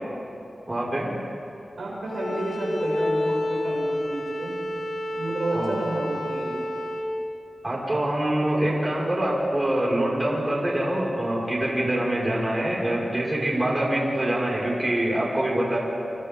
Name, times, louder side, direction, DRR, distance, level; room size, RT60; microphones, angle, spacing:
voice 1, 0.7-1.2 5.5-5.8 7.6-15.8, right 1 dB, 25° right, -5 dB, 5.6 m, -25 dB
voice 2, 1.8-4.6 5.1-6.6, right 1 dB, 85° right, -4 dB, 6.8 m, -31 dB
Bowed string instrument, 2.0-7.1, left 1 dB, 75° left, 3.2 m, -29 dB
29.0 x 27.5 x 3.8 m, 2.7 s
wide cardioid pair, 80°, 0 cm